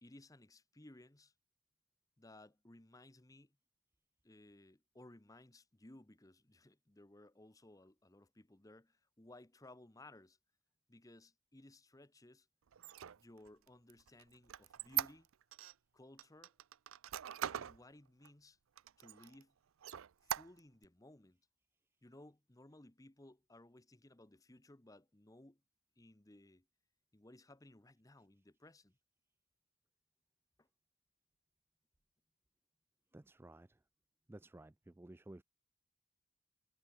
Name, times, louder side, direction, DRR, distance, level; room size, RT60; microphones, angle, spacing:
voice 1, 0.0-1.3 2.2-3.6 4.2-10.4 10.9-12.5 13.2-15.3 15.9-16.5 17.5-18.6 19.0-19.5 20.2-21.4 22.0-25.6 26.0-26.7 27.1-29.0 30.6-30.7, left 1 dB, 15° left, 0.9 m, -60 dB
Squeak, 12.7-15.7 16.2-17.8 18.2-18.3 18.8-19.4 19.8-20.9, right 11 dB, 90° right, 0.5 m, -42 dB
voice 2, 33.1-33.8 34.3-35.4, right 1 dB, 10° right, 0.3 m, -55 dB
head